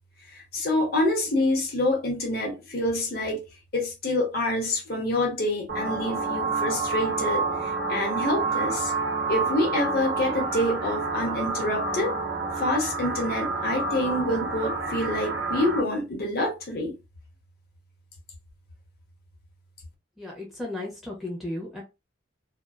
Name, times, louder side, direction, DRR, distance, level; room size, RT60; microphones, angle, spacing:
voice 1, 0.3-3.4 3.7-8.9 9.3-12.1 12.6-16.9, left 1 dB, 50° left, 0.9 m, -27 dB
sound 1, 5.7-15.8, right 4 dB, 55° right, 0.7 m, -29 dB
voice 2, 20.2-21.8, left 1 dB, ahead, 0.6 m, -34 dB
2.5 x 2.2 x 2.3 m
head